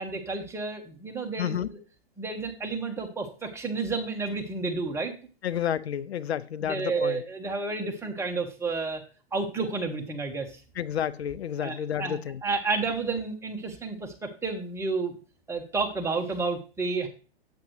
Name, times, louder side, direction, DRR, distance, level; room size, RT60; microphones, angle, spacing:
voice 1, 0.0-1.8 2.2-5.1 6.6-9.0 9.3-10.6 11.6-15.2 15.5-17.1, right 4 dB, 10° right, 1.4 m, -31 dB
voice 2, 1.4-1.7 5.4-7.2 10.8-12.4, left 9 dB, 90° left, 0.5 m, -30 dB
8.3 x 8.1 x 3.2 m
hypercardioid pair, 120°, 31 cm